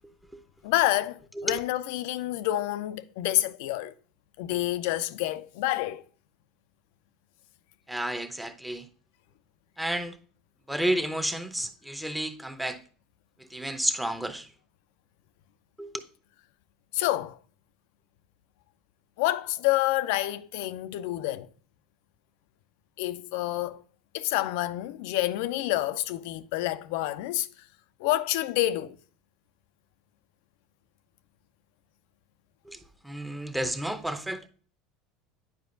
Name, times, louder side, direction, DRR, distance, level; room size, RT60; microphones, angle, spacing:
voice 1, 0.6-3.9 4.4-6.0 16.9-17.4 19.2-21.5 23.0-23.8 24.1-27.5 28.0-29.0, left 15 dB, 70° left, 0.4 m, -28 dB
voice 2, 7.9-8.9 9.8-10.2 10.7-12.8 13.5-14.5 15.8-15.9 32.7-34.5, right 1 dB, 5° right, 0.7 m, -31 dB
9.4 x 4.8 x 2.6 m
hypercardioid pair, 85°, 0 cm